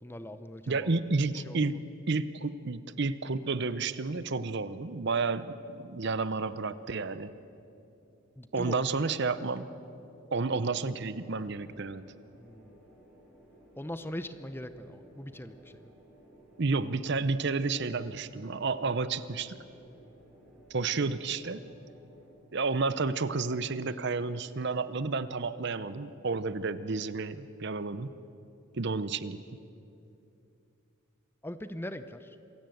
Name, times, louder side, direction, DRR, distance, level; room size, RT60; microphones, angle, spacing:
voice 1, 0.0-1.0 1.3-1.8 8.4-9.2 12.4-12.8 13.8-15.9 31.4-32.4, left 1 dB, 10° left, 11 dB, 0.7 m, -41 dB
voice 2, 0.7-1.7 2.1-7.3 8.5-9.7 10.3-12.0 16.6-19.5 20.7-21.6 22.5-28.1 28.7-29.4, right 4 dB, 55° right, 14 dB, 0.7 m, -31 dB
sound 1, 7.0-22.3, equal, 5° right, 6.5 m, -58 dB
27.0 x 16.0 x 7.9 m, 2.7 s
head